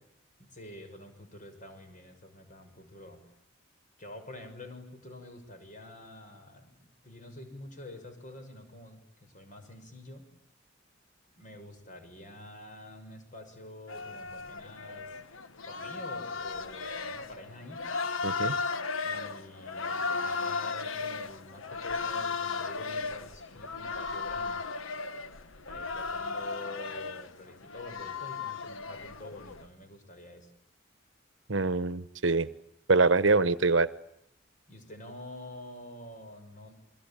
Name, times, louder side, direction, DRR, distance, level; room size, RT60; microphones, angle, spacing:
voice 1, 0.4-3.2 4.0-10.3 11.4-15.2 15.7-17.9 19.0-24.7 25.7-30.5 34.7-36.7, left 1 dB, 40° left, 7 dB, 6.7 m, -47 dB
sound 1, 13.9-29.7, left 4 dB, 90° left, 1.4 m, -35 dB
voice 2, 18.2-18.5 31.5-32.5 32.9-33.9, right 3 dB, 65° right, 15 dB, 1.1 m, -24 dB
29.0 x 23.0 x 8.9 m, 0.74 s
head